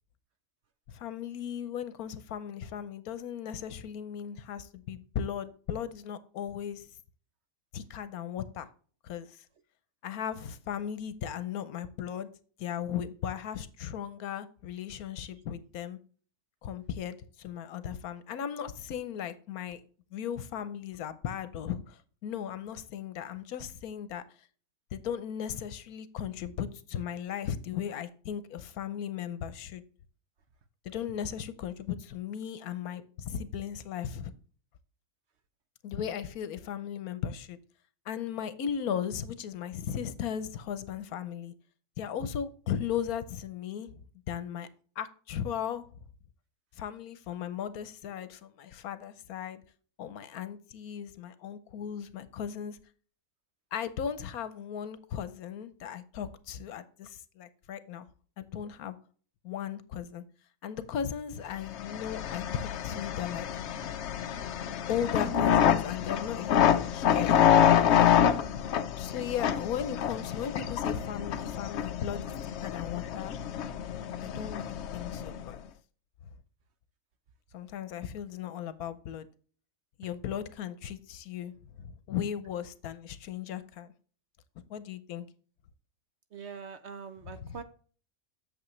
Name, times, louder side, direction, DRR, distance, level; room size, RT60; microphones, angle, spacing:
voice 1, 0.9-6.9 7.7-8.7 9.0-9.4 10.0-12.3 12.6-16.0 16.6-19.8 20.1-24.2 24.9-29.8 30.8-34.3 35.8-37.6 38.1-41.5 42.0-44.0 44.3-44.7 45.0-45.9 46.7-49.6 50.0-52.8 53.7-58.1 58.4-59.0 59.4-60.2 60.6-63.5 64.9-68.2 69.0-72.3 72.6-73.3 74.2-75.6 77.5-79.3 80.0-81.5 81.8-83.9 84.7-85.2 87.3-87.6, left 9 dB, 80° left, 1.2 m, -37 dB
sound 1, 61.7-75.5, left 9 dB, 60° left, 0.8 m, -27 dB
voice 2, 86.3-87.6, right 6 dB, 55° right, 0.9 m, -43 dB
8.3 x 7.0 x 3.2 m
omnidirectional pair, 1.5 m